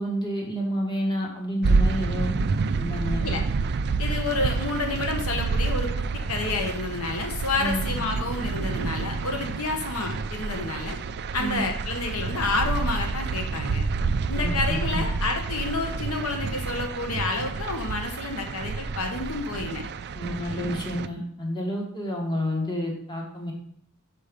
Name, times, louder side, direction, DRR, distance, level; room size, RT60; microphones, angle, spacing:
voice 1, 0.0-2.3 2.8-3.2 7.6-7.8 11.4-11.6 14.3-15.0 20.1-23.5, equal, 20° left, -1 dB, 1.6 m, -29 dB
sound 1, 1.6-21.1, right 4 dB, 50° right, 0.4 m, -28 dB
voice 2, 4.0-11.0 11.3-13.8 14.3-19.8, left 3 dB, 80° left, 3 dB, 1.1 m, -29 dB
6.0 x 5.4 x 5.2 m, 0.67 s
head